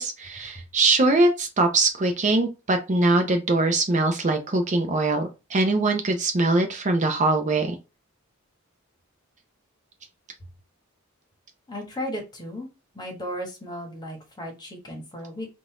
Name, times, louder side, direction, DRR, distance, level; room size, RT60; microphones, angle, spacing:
voice 1, 0.0-7.8, right 2 dB, 35° right, 5 dB, 0.6 m, -22 dB
voice 2, 11.7-12.7 12.9-15.5, equal, 20° left, 2 dB, 1.2 m, -35 dB
3.8 x 2.5 x 4.7 m, 0.28 s
head